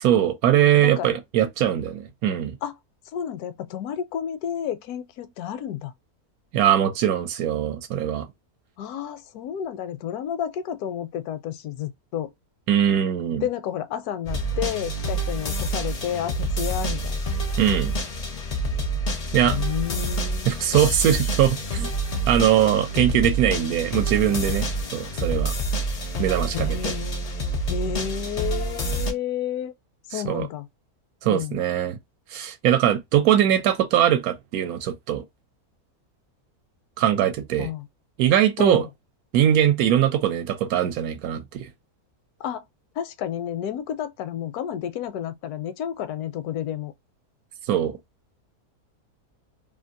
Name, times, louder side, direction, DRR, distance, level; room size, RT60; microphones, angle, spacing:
voice 1, 0.0-2.6 6.5-8.3 12.7-13.5 17.6-17.9 19.3-19.6 20.5-21.9 22.3-25.5 26.2-26.9 30.2-30.5 31.2-32.0 32.3-35.2 37.0-37.7 38.2-38.8 39.3-41.7 47.7-47.9, right 10 dB, 75° right, 1.1 m, -21 dB
voice 2, 0.8-1.1 2.6-2.7 3.1-5.9 8.8-12.3 13.4-17.2 19.4-20.5 26.5-27.4 27.7-29.7 30.1-30.7 31.2-31.6 37.6-37.9 38.6-38.9 42.4-42.7 43.0-46.9, left 10 dB, 80° left, 1.1 m, -31 dB
sound 1, 14.2-29.1, right 1 dB, 55° left, 0.4 m, -27 dB
2.7 x 2.5 x 2.5 m
omnidirectional pair, 1.6 m